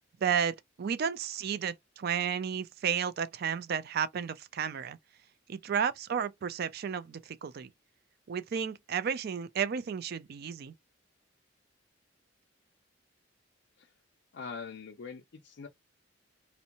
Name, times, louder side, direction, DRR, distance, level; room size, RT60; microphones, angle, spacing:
voice 1, 0.2-5.0 5.5-7.7 8.3-10.7, right 7 dB, 50° right, 0.3 m, -32 dB
voice 2, 14.3-15.7, left 5 dB, 60° left, 0.4 m, -43 dB
2.6 x 2.1 x 2.8 m
head